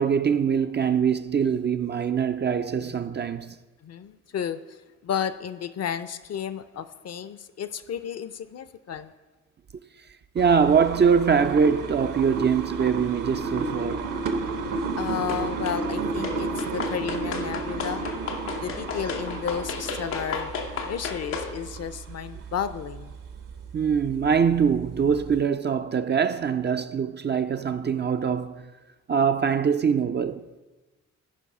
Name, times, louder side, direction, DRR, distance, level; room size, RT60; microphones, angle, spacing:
voice 1, 0.0-3.6 10.3-14.1 23.7-28.7 29.1-30.4, right 6 dB, 30° right, 0.4 m, -23 dB
voice 2, 3.8-4.8 5.0-9.1 15.0-18.1 18.6-20.5 20.8-23.1, left 8 dB, 45° left, 0.6 m, -32 dB
sound 1, 10.4-25.4, right 3 dB, 60° right, 0.9 m, -33 dB
sound 2, 15.3-15.8 16.2-21.5, left 5 dB, 90° left, 0.9 m, -33 dB
13.5 x 5.2 x 4.9 m
hypercardioid pair, 45°, 37 cm